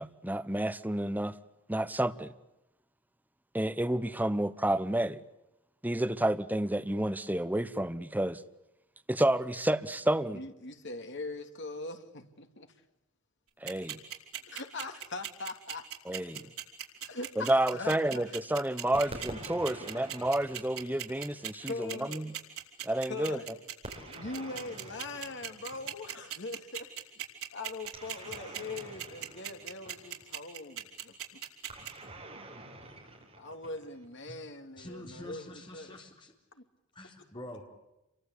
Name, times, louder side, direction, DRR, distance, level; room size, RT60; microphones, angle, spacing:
voice 1, 0.0-1.3 1.7-2.3 3.5-5.2 5.8-8.4 9.1-10.4 13.6-14.0 16.1-16.5 17.4-22.3 22.8-23.4, right 1 dB, 10° right, 0.9 m, -30 dB
voice 2, 10.3-12.7 14.5-15.8 17.0-18.4 21.6-22.3 23.0-23.5 23.9-26.9 27.5-31.4 32.8-32.9 33.3-35.4 35.7-35.9 36.5-36.6, left 3 dB, 55° left, 2.6 m, -41 dB
sound 1, 13.7-31.9, right 10 dB, 75° right, 5.2 m, -38 dB
sound 2, 18.9-21.6 23.8-26.2 27.8-30.3 31.7-34.1, right 1 dB, 30° right, 5.9 m, -47 dB
voice 3, 34.8-36.3 36.9-37.7, left 1 dB, 25° left, 3.9 m, -46 dB
29.0 x 24.0 x 8.5 m
head